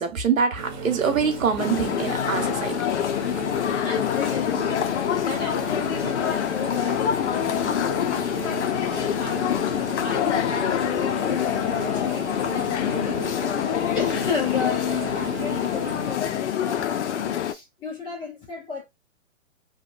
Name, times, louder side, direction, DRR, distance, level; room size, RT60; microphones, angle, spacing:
voice 1, 0.0-2.9, right 6 dB, 85° right, 0.9 m, -24 dB
sound 1, 0.5-16.1, right 4 dB, 35° right, 1.0 m, -36 dB
sound 2, 1.6-17.5, left 10 dB, 60° left, 0.5 m, -26 dB
voice 2, 3.8-13.4 13.9-18.9, left 5 dB, 10° left, 0.6 m, -34 dB
2.7 x 2.2 x 2.3 m
hypercardioid pair, 130°, 39 cm